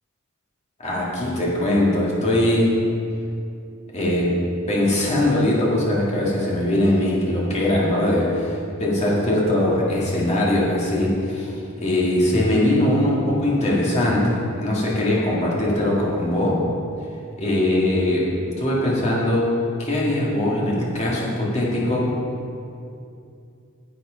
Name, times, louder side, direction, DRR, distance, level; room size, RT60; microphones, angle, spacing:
voice 1, 0.8-2.7 3.9-4.3 4.7-8.4 8.8-16.6 17.4-18.3 18.6-19.5 19.8-22.1, left 1 dB, 30° left, -5 dB, 1.9 m, -21 dB
10.0 x 7.9 x 3.8 m, 2.5 s
head